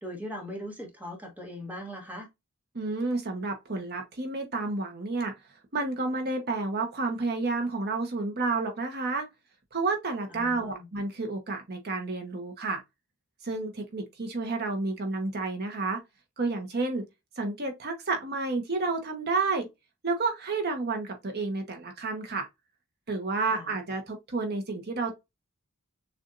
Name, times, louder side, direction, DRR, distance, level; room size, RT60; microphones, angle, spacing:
voice 1, 0.0-2.3 10.3-10.9 23.5-23.7, equal, 10° right, 1.2 m, -40 dB
voice 2, 2.7-5.3 5.7-9.3 9.7-12.8 13.4-16.0 16.4-17.0 17.4-19.7 20.0-22.5 23.1-25.1, right 3 dB, 50° right, 1.0 m, -30 dB
6.6 x 2.5 x 2.5 m
head